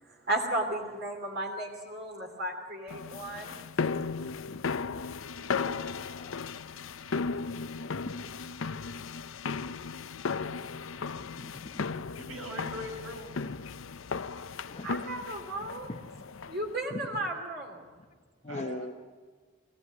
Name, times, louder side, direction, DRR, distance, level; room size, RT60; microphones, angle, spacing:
voice 1, 0.0-3.6 14.8-15.9 16.5-17.8, right 1 dB, 50° right, 1 dB, 2.8 m, -34 dB
sound 1, 2.9-16.8, left 5 dB, 70° left, 0.7 m, -36 dB
voice 2, 5.4-6.9 11.4-12.0 14.6-15.0 15.9-16.3 16.9-17.3 18.4-18.9, left 2 dB, 35° left, 1 dB, 1.0 m, -44 dB
voice 3, 11.0-11.5 12.2-13.4 18.5-18.9, equal, 80° right, 2 dB, 6.1 m, -42 dB
23.0 x 16.0 x 9.4 m, 1.5 s
head